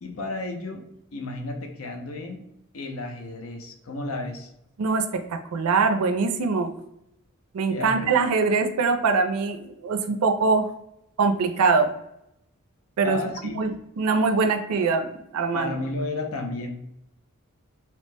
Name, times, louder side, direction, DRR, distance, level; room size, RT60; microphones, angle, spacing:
voice 1, 0.0-2.5 2.7-4.5 7.7-8.1 13.0-13.6 15.5-16.8, left 2 dB, 70° left, 4 dB, 0.5 m, -33 dB
voice 2, 4.8-6.7 7.5-10.7 11.2-11.9 13.0-13.2 13.6-13.7 14.0-15.7, right 4 dB, 90° right, 6 dB, 0.4 m, -23 dB
2.8 x 2.1 x 3.2 m, 0.81 s
head